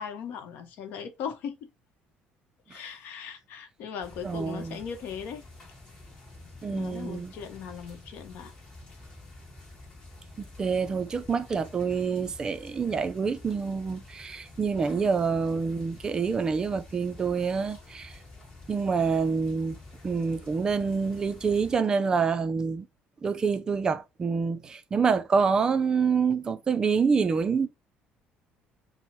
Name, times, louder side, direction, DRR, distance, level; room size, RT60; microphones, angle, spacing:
voice 1, 0.0-1.7 2.7-5.4 6.7-8.5, left 7 dB, 60° left, 0.9 m, -38 dB
sound 1, 4.0-21.8, left 2 dB, 25° left, 1.3 m, -49 dB
voice 2, 4.2-4.8 6.6-7.3 10.4-18.1 18.7-19.8 20.0-22.9 23.2-27.7, right 5 dB, 20° right, 0.4 m, -27 dB
4.3 x 2.1 x 4.4 m
cardioid pair, 180°, 4 cm